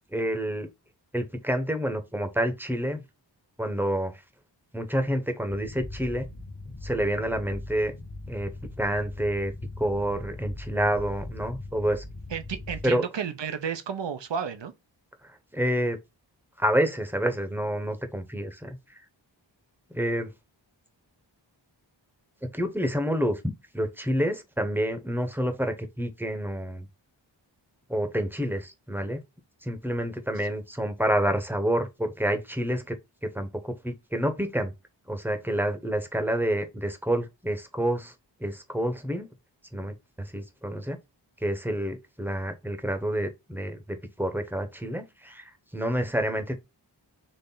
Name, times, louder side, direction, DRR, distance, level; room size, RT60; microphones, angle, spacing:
voice 1, 0.1-0.7 1.1-3.0 3.6-4.1 4.7-6.3 6.8-7.9 8.3-8.5 8.8-9.5 9.8-12.0 12.8-13.1 15.5-16.0 16.6-18.8 19.9-20.3 22.5-23.4 23.7-26.9 27.9-29.2 29.6-33.0 33.3-34.7 35.1-38.1 38.4-39.3 39.7-41.0 41.4-46.6, equal, 5° right, 0.9 m, -28 dB
sound 1, 5.5-12.9, left 2 dB, 35° left, 1.3 m, -40 dB
voice 2, 12.3-14.7, right 7 dB, 70° right, 0.7 m, -32 dB
4.2 x 3.3 x 3.8 m
wide cardioid pair, 55°, 45 cm